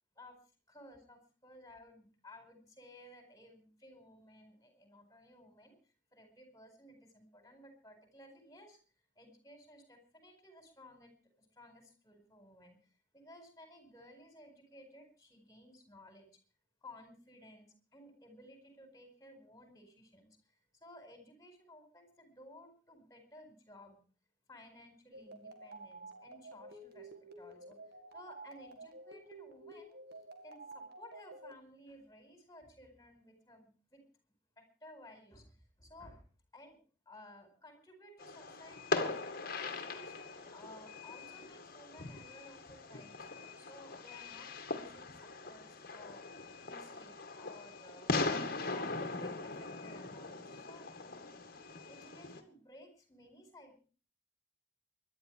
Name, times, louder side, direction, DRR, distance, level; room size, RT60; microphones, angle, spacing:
voice 1, 0.7-8.8 9.2-11.1 11.4-12.8 13.1-16.3 16.8-24.0 24.5-27.8 28.1-30.0 30.4-34.0 34.6-36.2 36.5-36.8 37.0-39.1 39.6-43.1 43.6-46.2 46.6-48.1 48.5-50.9 51.9-53.8, left 1 dB, 15° left, 6 dB, 4.8 m, -57 dB
sound 1, 25.1-31.5, right 2 dB, 55° right, 2.1 m, -51 dB
Fireworks, 38.2-52.4, left 3 dB, 50° left, 2.2 m, -40 dB
23.0 x 11.0 x 4.8 m, 0.38 s
head